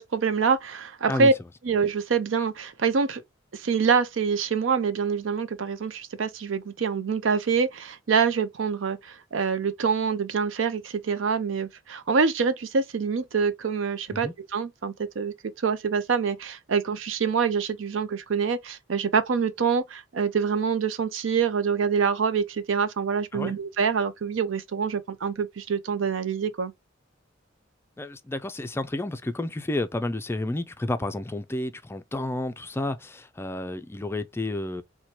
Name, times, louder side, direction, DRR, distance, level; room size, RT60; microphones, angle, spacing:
voice 1, 0.0-1.3 1.6-3.2 3.5-26.7, right 5 dB, 80° right, 0.5 m, -25 dB
voice 2, 28.0-34.8, left 2 dB, 15° left, 0.3 m, -31 dB
4.3 x 2.2 x 3.0 m
head